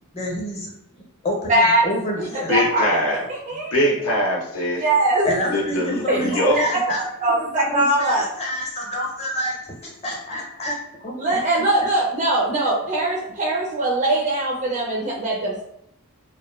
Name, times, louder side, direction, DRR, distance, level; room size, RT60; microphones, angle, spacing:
voice 1, 0.1-0.7 1.2-2.5 5.2-7.0 7.4-9.6 10.0-11.4, equal, 30° left, -2 dB, 0.7 m, -28 dB
voice 2, 1.5-1.9 2.2-3.0 3.3-3.7 4.7-5.3 6.1-8.3 11.2-15.6, right 2 dB, 35° right, -3 dB, 0.4 m, -21 dB
voice 3, 2.5-3.2 3.7-4.8 5.5-6.6, left 1 dB, 65° left, -3 dB, 0.5 m, -22 dB
2.8 x 2.1 x 2.3 m, 0.75 s
head